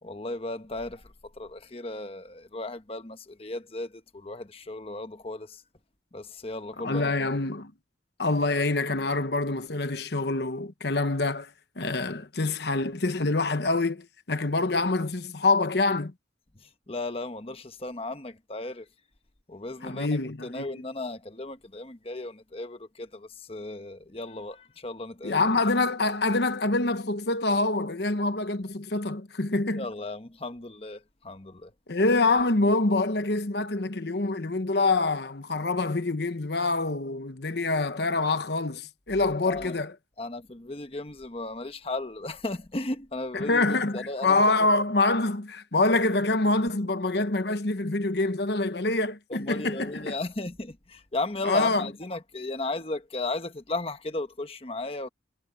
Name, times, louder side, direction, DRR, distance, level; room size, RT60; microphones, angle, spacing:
voice 1, 0.0-1.0 1.4-5.6 6.1-7.3 16.6-18.8 19.5-25.5 29.7-31.7 39.5-39.7 40.2-44.4 49.3-55.1, left 2 dB, 30° left, 1.1 m, -35 dB
voice 2, 6.8-7.7 8.2-11.5 11.8-16.1 19.8-20.8 25.2-29.9 31.9-39.9 43.3-50.1 51.4-51.9, left 2 dB, 60° left, 1.1 m, -26 dB
head